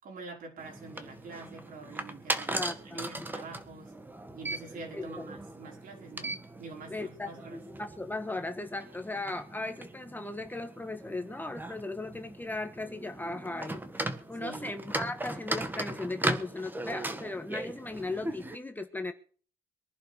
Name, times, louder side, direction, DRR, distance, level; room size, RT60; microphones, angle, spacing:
voice 1, 0.0-4.0 4.3-7.6 14.4-14.8, right 3 dB, 55° right, 5.4 m, -46 dB
sound 1, 0.6-18.6, right 1 dB, 10° right, 1.6 m, -38 dB
voice 2, 2.5-3.3 4.9-5.0 6.9-7.3 7.8-19.1, left 2 dB, 10° left, 1.4 m, -37 dB
22.5 x 11.0 x 5.0 m
cardioid pair, 110°, 17 cm